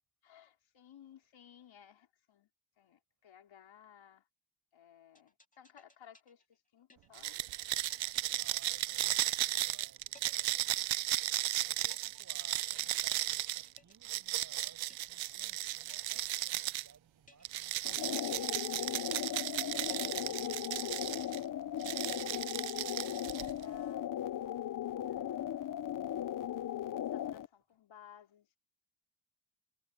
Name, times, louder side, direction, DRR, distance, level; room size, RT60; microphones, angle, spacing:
voice 1, 0.2-2.5 2.8-4.3 4.7-7.4 22.5-24.1 25.1-25.8 27.1-28.5, left 9 dB, 85° left, 4.4 m, -59 dB
sound 1, 5.2-7.5 7.9-8.9 9.3-9.8 10.1-11.4 11.9-15.5 15.9-16.9 17.3-17.8 18.1-19.4 19.9-20.9, left 2 dB, 15° left, 2.2 m, -63 dB
sound 2, 7.2-16.9 17.5-21.4 21.8-23.6, right 15 dB, 85° right, 0.6 m, -35 dB
voice 2, 8.3-11.1 11.7-21.4 26.8-27.1, right 5 dB, 40° right, 6.1 m, -62 dB
sound 3, 17.8-27.5, left 11 dB, 45° left, 0.5 m, -37 dB
wide cardioid pair, 130°, 45 cm